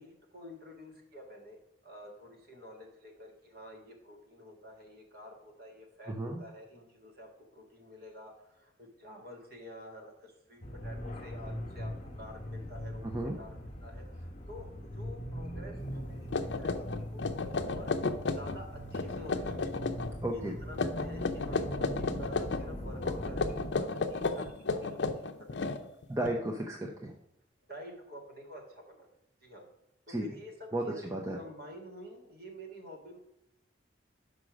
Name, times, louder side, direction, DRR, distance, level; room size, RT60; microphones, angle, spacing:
voice 1, 0.0-13.0 13.4-13.5 13.8-16.3 16.6-17.9 18.2-19.8 20.3-25.9 27.7-29.1 29.4-29.7 30.1-31.0 31.3-33.2, equal, 50° right, 1 dB, 1.7 m, -49 dB
voice 2, 6.1-6.4 13.0-13.4 20.2-20.5 26.1-27.1 30.1-30.3 30.7-30.8 31.1-31.4, right 1 dB, 15° right, 1 dB, 0.6 m, -33 dB
sound 1, 10.6-23.7, equal, 35° left, 1.0 m, -41 dB
sound 2, 15.9-16.0 16.3-18.6 18.9-20.1 20.7-22.6 23.0-26.3, left 3 dB, 65° left, 0.6 m, -33 dB
6.2 x 5.1 x 5.0 m, 0.85 s
head